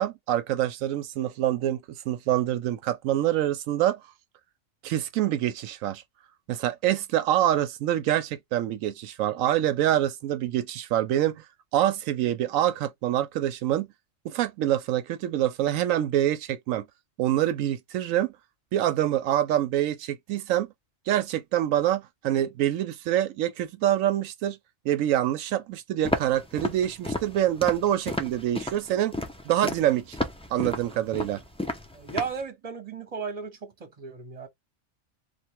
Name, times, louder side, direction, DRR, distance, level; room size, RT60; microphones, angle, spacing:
voice 1, 0.0-1.8 2.1-4.0 4.8-6.0 6.5-11.4 11.7-13.9 14.2-16.8 17.2-18.3 18.7-20.7 21.1-24.6 24.8-29.1 29.5-30.2 30.5-31.4, right 12 dB, 85° right, 1.0 m, -25 dB
Walk footsteps, 26.0-32.4, left 1 dB, 5° left, 0.5 m, -32 dB
voice 2, 31.9-34.5, right 6 dB, 30° right, 1.1 m, -35 dB
3.3 x 2.4 x 4.5 m
omnidirectional pair, 1.3 m